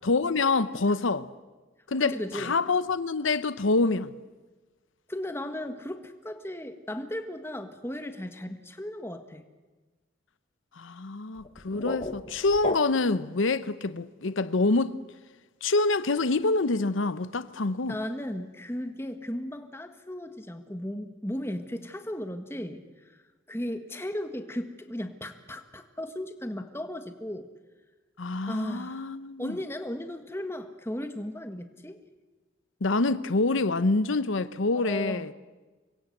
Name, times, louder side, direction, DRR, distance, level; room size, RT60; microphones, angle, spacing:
voice 1, 0.0-1.3 1.9-4.1 10.8-15.0 15.6-18.0 28.2-29.6 32.8-35.3, left 3 dB, 85° left, 0.8 m, -26 dB
voice 2, 2.0-2.5 5.1-9.4 17.9-22.8 23.5-27.5 28.5-29.1 29.4-32.0 34.8-35.3, left 1 dB, 10° left, 1.5 m, -36 dB
sound 1, 11.4-13.3, left 2 dB, 30° left, 1.3 m, -35 dB
25.5 x 22.0 x 7.9 m
head